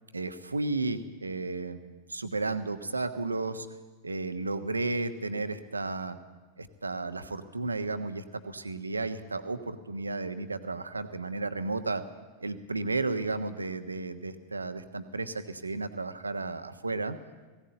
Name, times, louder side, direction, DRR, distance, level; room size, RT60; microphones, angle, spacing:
voice 1, 0.1-1.8 2.1-3.7 4.0-6.2 6.6-12.0 12.4-17.2, right 3 dB, 80° right, 9 dB, 1.2 m, -33 dB
19.5 x 16.5 x 8.9 m, 1.3 s
figure-of-eight pair, 90°, 0 cm